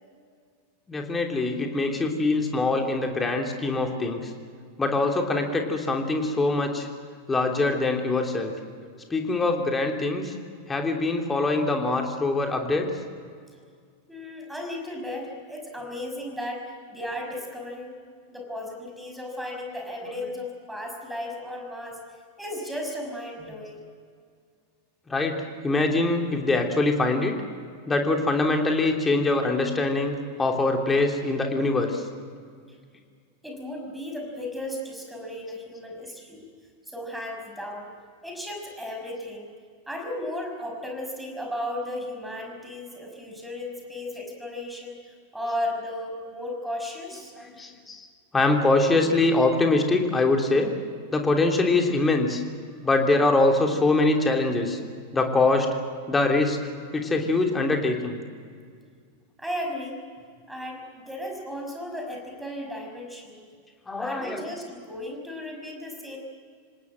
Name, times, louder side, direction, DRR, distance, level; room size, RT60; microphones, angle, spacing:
voice 1, 0.9-4.3 4.8-6.9 7.3-8.5 9.1-10.3 10.7-12.9 25.1-27.3 27.9-32.0 47.4-48.1 48.3-50.7 51.1-52.4 52.8-54.8 55.1-55.7 56.1-56.6 56.9-58.2 63.9-64.4, left 2 dB, 15° left, 2 dB, 3.1 m, -23 dB
voice 2, 14.1-16.6 16.9-18.0 18.3-22.0 22.4-23.9 33.4-36.5 36.9-37.9 38.2-39.5 39.9-47.3 59.4-60.0 60.5-63.5 64.0-66.2, left 1 dB, 5° right, 2 dB, 5.8 m, -35 dB
26.5 x 19.0 x 7.7 m, 2.1 s
figure-of-eight pair, 90°, 0 cm